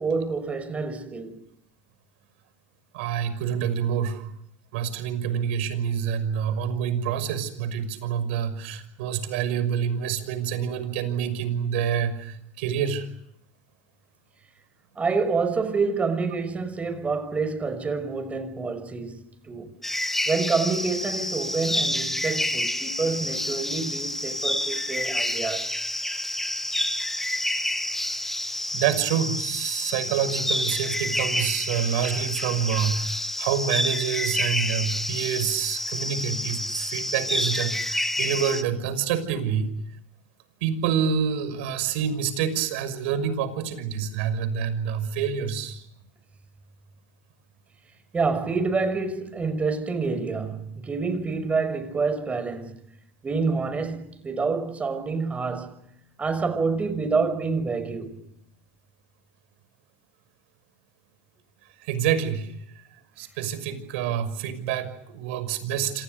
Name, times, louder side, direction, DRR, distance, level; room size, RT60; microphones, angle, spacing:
voice 1, 0.0-1.4 15.0-19.7 20.3-25.7 48.1-52.8 53.2-55.9 56.2-58.2, right 4 dB, 20° right, 6.0 m, -27 dB
voice 2, 2.9-4.3 4.7-13.1 28.7-39.7 40.6-45.8 61.8-62.8 63.2-66.0, right 8 dB, 80° right, 6.0 m, -27 dB
sound 1, 19.8-38.6, left 1 dB, 5° left, 2.2 m, -28 dB
28.5 x 27.5 x 6.8 m
supercardioid pair, 105°, 6 cm